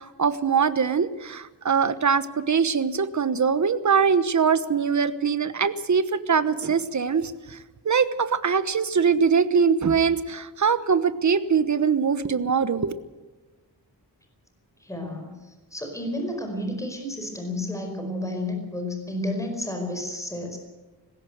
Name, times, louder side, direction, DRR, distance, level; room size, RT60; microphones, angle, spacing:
voice 1, 0.0-7.6 7.8-12.9, right 6 dB, 50° right, 13 dB, 1.2 m, -22 dB
voice 2, 14.8-20.6, left 1 dB, 10° left, 4 dB, 4.9 m, -31 dB
20.0 x 16.5 x 7.9 m, 1.2 s
wide cardioid pair, 110°, 38 cm